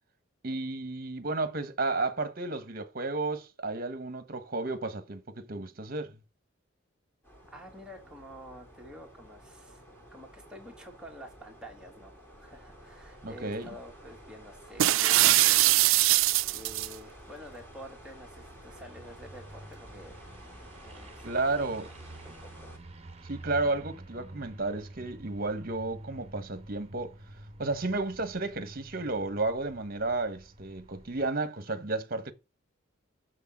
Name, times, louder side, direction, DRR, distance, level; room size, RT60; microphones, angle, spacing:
voice 1, 0.4-6.2 13.2-13.7 21.2-21.9 23.2-27.1 27.6-32.3, right 3 dB, 50° right, 1.2 m, -32 dB
sound 1, 7.2-22.8, equal, 10° left, 3.3 m, -52 dB
voice 2, 7.5-9.8 10.1-16.0 16.5-20.3 20.7-21.9 22.2-22.8, equal, 5° right, 2.5 m, -49 dB
sound 2, 12.3-31.3, right 1 dB, 35° right, 1.2 m, -50 dB
sound 3, 14.8-16.9, right 16 dB, 90° right, 0.4 m, -22 dB
6.7 x 6.5 x 7.4 m
head